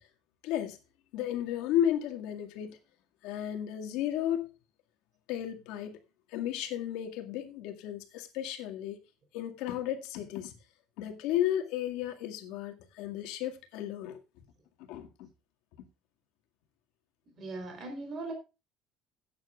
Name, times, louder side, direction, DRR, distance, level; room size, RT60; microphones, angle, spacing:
voice 1, 0.4-0.8 1.1-2.8 3.2-4.5 5.3-6.0 6.3-9.0 9.3-10.5 11.0-14.2 14.9-15.3, left 11 dB, 80° left, 2.0 m, -33 dB
voice 2, 17.4-18.3, right 2 dB, 30° right, 3.8 m, -39 dB
18.0 x 9.3 x 2.4 m
cardioid pair, 180°, 0 cm